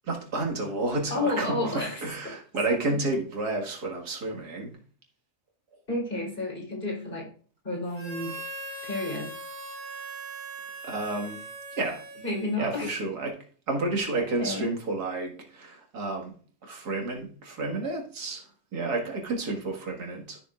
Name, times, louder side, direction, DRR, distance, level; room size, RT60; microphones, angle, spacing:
voice 1, 0.0-4.8 10.8-11.4 11.7-12.0 12.6-13.4 13.7-16.3 16.6-20.4, right 2 dB, 85° right, 1 dB, 2.3 m, -31 dB
voice 2, 1.1-2.3 2.7-3.0 5.9-7.3 7.6-8.3 8.8-9.3 12.2-13.0 14.1-14.7, left 2 dB, 35° left, -4 dB, 3.9 m, -31 dB
Harmonica, 7.9-12.8, right 2 dB, 70° right, 2.6 m, -40 dB
13.0 x 6.8 x 2.4 m, 0.43 s
omnidirectional pair, 1.6 m